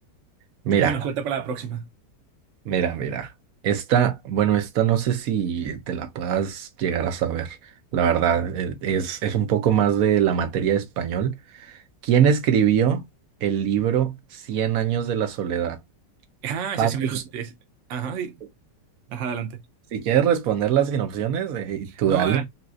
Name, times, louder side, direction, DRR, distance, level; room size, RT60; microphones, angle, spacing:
voice 1, 0.7-1.9 16.4-17.5 17.9-18.4 19.1-19.6 21.8-22.5, right 7 dB, 85° right, 0.6 m, -29 dB
voice 2, 2.7-3.3 3.6-7.6 7.9-13.0 13.4-15.8 16.8-16.9 19.9-22.4, right 9 dB, 65° right, 1.0 m, -23 dB
4.0 x 2.4 x 2.3 m
omnidirectional pair, 1.9 m